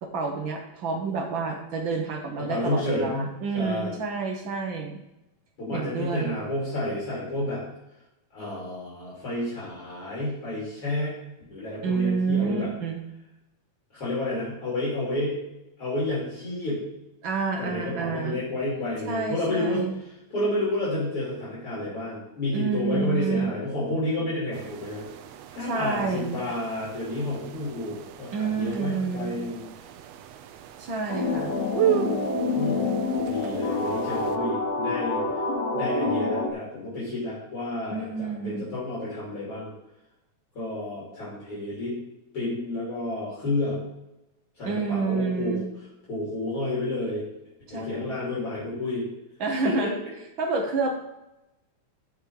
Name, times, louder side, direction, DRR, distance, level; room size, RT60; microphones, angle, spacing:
voice 1, 0.0-5.0 5.7-6.4 11.8-13.0 17.2-18.4 19.0-20.0 22.5-23.5 25.6-26.4 28.3-29.4 30.8-31.5 37.9-38.6 44.6-45.7 47.7-48.2 49.4-49.9 50.4-51.0, right 4 dB, 60° right, 3 dB, 1.3 m, -28 dB
voice 2, 2.4-3.9 5.6-7.6 8.3-11.1 11.5-12.7 13.9-15.4 15.8-16.8 17.6-19.9 20.3-25.0 25.5-29.7 32.2-32.8 33.3-35.2 35.7-39.7 40.6-42.0 42.3-43.8 44.6-45.6 46.1-47.3 47.7-49.1 49.6-49.7, left 1 dB, 45° left, -8 dB, 3.9 m, -30 dB
sound 1, 24.5-34.4, right 10 dB, 75° right, 1.5 m, -34 dB
sound 2, 31.1-36.5, left 3 dB, 60° left, 2.0 m, -27 dB
14.0 x 5.1 x 4.7 m, 0.92 s
omnidirectional pair, 3.6 m